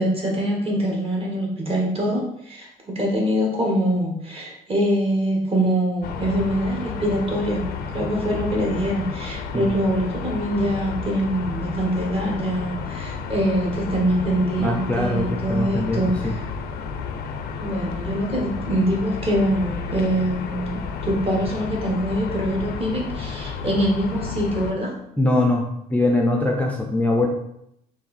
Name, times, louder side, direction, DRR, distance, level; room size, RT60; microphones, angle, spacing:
voice 1, 0.0-7.7 7.9-16.4 17.6-24.9, equal, 35° right, -1 dB, 1.2 m, -24 dB
sound 1, 6.0-24.7, left 5 dB, 70° left, 0.5 m, -32 dB
voice 2, 14.6-16.3 25.2-25.6 25.9-27.3, left 1 dB, 10° left, -1 dB, 0.5 m, -22 dB
3.4 x 2.5 x 4.0 m, 0.75 s
cardioid pair, 110°, 17 cm